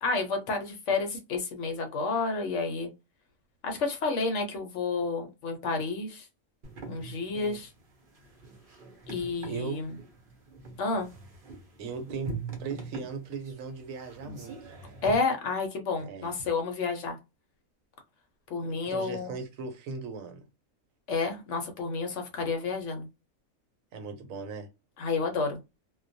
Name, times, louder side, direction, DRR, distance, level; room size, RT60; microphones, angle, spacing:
voice 1, 0.0-2.9 3.6-6.3 6.9-7.7 9.1-9.9 10.8-11.1 15.0-17.2 18.5-19.3 21.1-23.1 25.0-25.6, left 4 dB, 65° left, 0.9 m, -30 dB
sound 1, 6.6-15.1, right 4 dB, 50° right, 0.7 m, -43 dB
voice 2, 9.5-9.9 11.8-14.7 16.0-16.3 18.6-20.4 23.9-24.7, right 4 dB, 75° right, 1.0 m, -38 dB
2.3 x 2.2 x 2.5 m
omnidirectional pair, 1.5 m